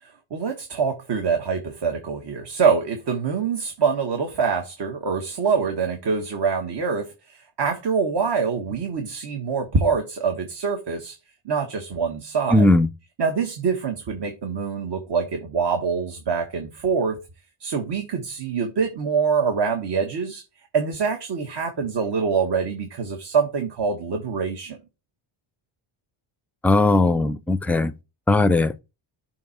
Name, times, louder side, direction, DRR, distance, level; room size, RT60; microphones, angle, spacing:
voice 1, 0.0-11.2 11.4-12.7 13.2-17.2 17.6-20.4 20.7-24.8, right 5 dB, 55° right, 1.3 m, -25 dB
voice 2, 12.5-12.9 26.6-27.9 28.3-28.7, left 2 dB, 5° left, 0.4 m, -18 dB
7.1 x 3.0 x 5.6 m
cardioid pair, 95°, 48 cm